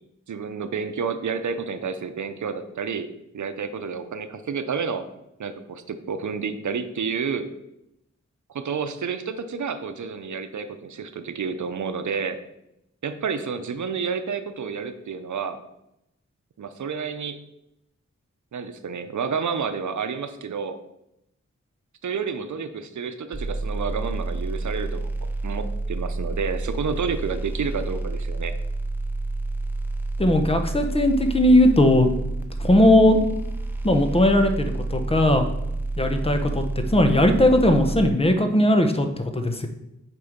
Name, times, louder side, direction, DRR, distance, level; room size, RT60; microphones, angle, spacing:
voice 1, 0.3-5.1 5.4-7.5 8.5-12.4 13.0-15.6 16.6-17.4 18.5-20.8 22.0-28.6, right 5 dB, 80° right, 10 dB, 0.7 m, -30 dB
sound 1, 23.3-38.1, right 2 dB, 5° right, 0.9 m, -29 dB
voice 2, 30.2-32.1 32.6-33.2 33.8-35.4 36.0-39.7, left 1 dB, 20° left, 6 dB, 0.9 m, -18 dB
6.9 x 4.6 x 5.1 m, 0.85 s
wide cardioid pair, 95°, 29 cm